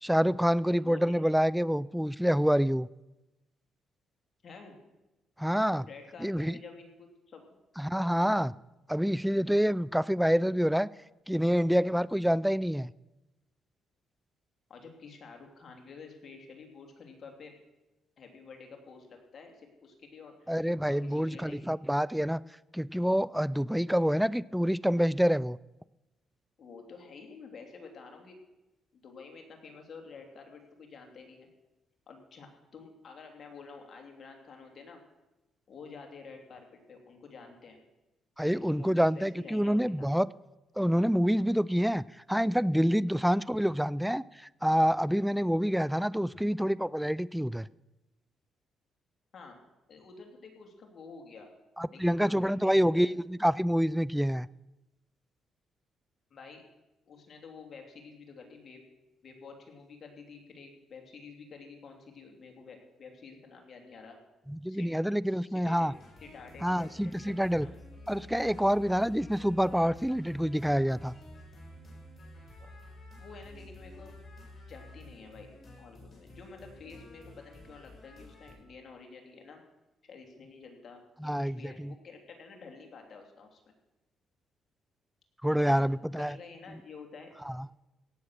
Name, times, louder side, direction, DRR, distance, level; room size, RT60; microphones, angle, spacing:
voice 1, 0.0-2.9 5.4-5.9 6.2-6.5 7.8-8.5 8.9-10.9 11.3-12.9 20.5-22.4 22.7-25.6 38.4-40.3 40.8-42.0 42.3-44.2 44.6-47.7 51.8-54.5 64.5-65.9 66.6-67.7 68.1-71.1 81.2-81.9 85.4-86.4 87.5-87.6, equal, ahead, 0.3 m, -27 dB
voice 2, 4.4-4.8 5.8-7.4 14.7-17.5 18.2-20.6 20.9-21.7 26.6-28.4 28.9-31.5 32.1-35.0 35.7-37.8 38.5-40.1 43.0-43.2 49.3-49.6 49.9-51.5 51.9-53.0 56.3-56.6 57.1-58.8 59.2-64.2 64.7-65.0 65.3-65.9 66.2-67.7 72.6-72.7 73.2-74.1 74.7-75.5 75.8-79.6 80.0-83.6 85.6-85.8 86.1-87.3, left 4 dB, 50° left, 3.1 m, -49 dB
sound 1, 65.9-78.5, left 1 dB, 30° left, 5.5 m, -50 dB
17.0 x 7.8 x 6.5 m
cardioid pair, 90°, 0 cm